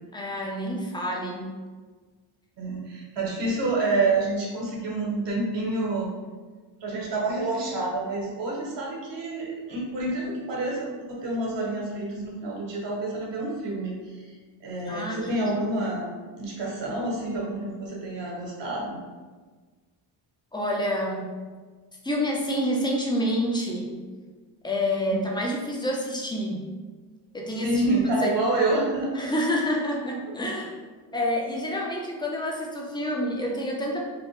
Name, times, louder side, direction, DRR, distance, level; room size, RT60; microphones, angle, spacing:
voice 1, 0.1-1.5 14.9-15.7 20.5-21.3 22.0-24.0 24.6-26.6 27.3-27.8 28.2-28.3 29.1-30.7 31.1-34.1, equal, 10° left, -1 dB, 0.6 m, -28 dB
voice 2, 2.6-6.1 6.8-14.3 14.6-16.0 16.3-19.0 25.1-25.2 27.6-29.3 30.3-30.4, right 2 dB, 60° right, -3 dB, 1.0 m, -28 dB
2.9 x 2.0 x 3.1 m, 1.4 s
cardioid pair, 70°, 47 cm